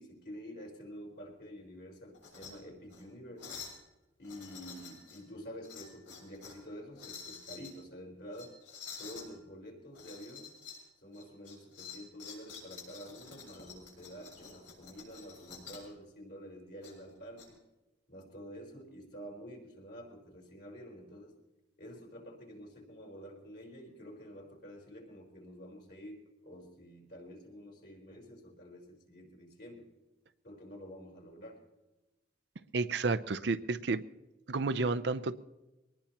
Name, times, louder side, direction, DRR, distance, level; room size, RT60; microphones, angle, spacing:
voice 1, 0.0-3.6 4.2-8.6 8.9-10.6 11.0-17.6 18.1-21.3 21.8-29.9 30.4-31.6, equal, 55° left, 0 dB, 4.3 m, -49 dB
sound 1, 2.1-2.5 2.9-3.0 3.4-3.8 4.2-5.2 5.6-6.6 6.9-7.7 8.3-9.3 9.9-10.8 11.1-15.9 16.8-17.5, left 6 dB, 80° left, 6.5 m, -49 dB
voice 2, 32.7-34.0 34.5-35.3, right 3 dB, 65° right, 11 dB, 0.6 m, -31 dB
23.0 x 19.0 x 3.0 m, 1.0 s
head